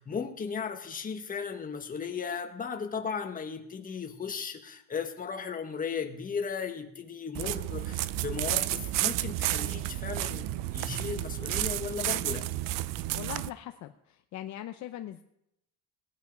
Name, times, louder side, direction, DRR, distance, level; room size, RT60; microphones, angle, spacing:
voice 1, 0.0-12.4, left 6 dB, 20° left, 5 dB, 1.4 m, -36 dB
sound 1, 7.3-13.5, right 15 dB, 55° right, 0.6 m, -31 dB
voice 2, 13.1-15.2, left 12 dB, 45° left, 7 dB, 0.8 m, -41 dB
19.0 x 10.5 x 5.3 m, 0.81 s
cardioid pair, 145°, 39 cm